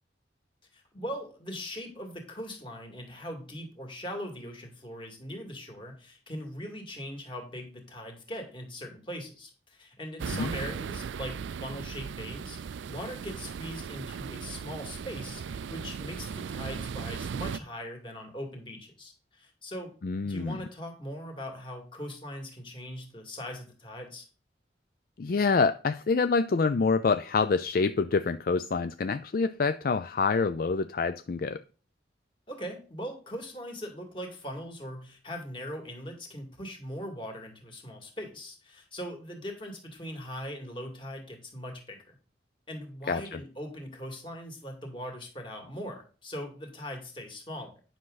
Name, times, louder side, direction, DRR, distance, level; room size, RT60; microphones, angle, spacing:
voice 1, 0.7-19.9 20.2-24.2 32.5-42.2 42.7-47.7, equal, 25° left, 2.3 m, -40 dB
sound 1, 10.2-17.6, right 6 dB, 75° right, 0.4 m, -37 dB
voice 2, 20.0-20.6 25.2-31.6 43.1-43.4, left 4 dB, 50° left, 0.4 m, -26 dB
10.0 x 6.2 x 3.9 m
head